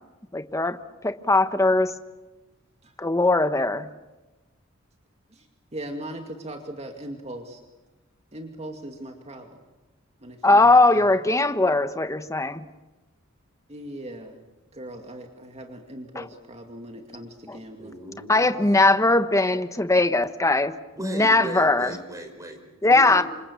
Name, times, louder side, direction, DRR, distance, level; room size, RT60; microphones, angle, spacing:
voice 1, 0.3-0.8 1.0-1.9 3.0-3.9 10.4-12.7 16.1-16.3 17.5-17.6 18.3-20.7 21.0-22.0 22.8-23.2, left 2 dB, 15° left, 10 dB, 1.1 m, -20 dB
voice 2, 5.7-7.6 8.3-9.6 10.2-11.1 13.7-14.4 14.7-18.0, right 1 dB, 30° right, 3 dB, 2.3 m, -39 dB
voice 3, 17.8-19.1 20.9-23.2, right 1 dB, 15° right, 4 dB, 5.4 m, -38 dB
28.5 x 26.5 x 7.0 m, 1.1 s
head